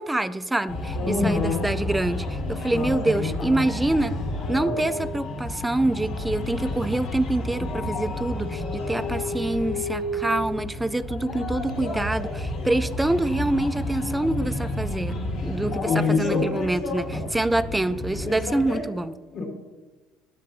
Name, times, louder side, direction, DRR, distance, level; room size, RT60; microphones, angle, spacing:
voice 1, 0.0-4.2 4.5-15.1 15.4-19.2, right 2 dB, 10° right, 13 dB, 0.4 m, -26 dB
sound 1, 0.7-18.8, left 1 dB, 85° left, 2.6 m, -31 dB
voice 2, 0.9-1.6 2.7-3.7 4.7-4.9 15.8-16.4 17.1-17.2 19.3-19.5, left 4 dB, 65° left, -1 dB, 2.4 m, -26 dB
10.5 x 7.3 x 2.7 m, 1.2 s
supercardioid pair, 90°, 0 cm